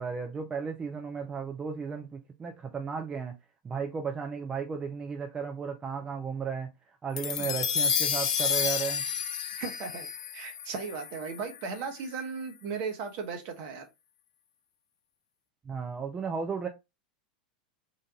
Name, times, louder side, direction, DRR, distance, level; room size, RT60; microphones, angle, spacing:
voice 1, 0.0-3.4 3.6-6.7 7.0-9.0 15.6-16.7, right 6 dB, 20° right, 0.6 m, -34 dB
sound 1, 7.2-11.7, left 7 dB, 60° left, 0.5 m, -30 dB
voice 2, 9.6-10.1 10.3-13.9, right 5 dB, 45° right, 1.1 m, -36 dB
3.9 x 2.5 x 3.6 m
figure-of-eight pair, 90°, 4 cm